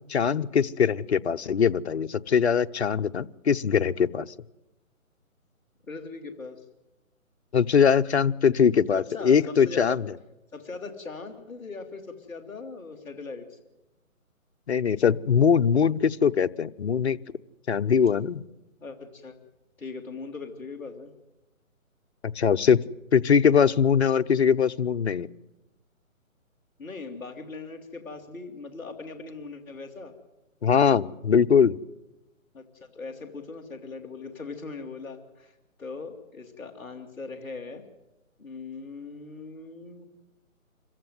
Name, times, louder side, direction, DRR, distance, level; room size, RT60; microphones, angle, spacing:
voice 1, 0.1-4.3 7.5-10.1 14.7-17.2 17.7-18.4 22.2-22.8 23.1-25.3 30.6-31.8, left 7 dB, 50° left, 9 dB, 0.7 m, -22 dB
voice 2, 5.8-6.6 8.9-10.0 10.5-13.6 18.8-19.3 19.8-21.1 26.8-30.1 32.5-37.8 38.4-40.1, left 4 dB, 5° left, -7 dB, 1.2 m, -40 dB
26.5 x 15.0 x 9.5 m, 0.99 s
hypercardioid pair, 165°, 42 cm